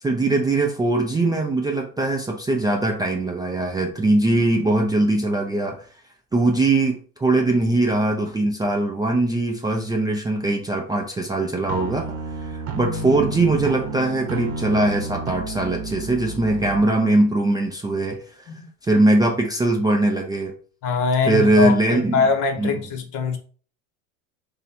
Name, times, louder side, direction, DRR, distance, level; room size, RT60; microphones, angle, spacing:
voice 1, 0.0-5.9 6.3-12.0 12.4-18.4 18.8-20.5 21.3-22.2 22.6-22.8, right 2 dB, 10° right, 0 dB, 0.4 m, -21 dB
sound 1, 11.7-16.8, right 2 dB, 35° right, 0.9 m, -31 dB
voice 2, 20.8-23.4, left 5 dB, 50° left, 6 dB, 1.0 m, -23 dB
3.1 x 2.8 x 4.1 m, 0.42 s
hypercardioid pair, 90°, 42 cm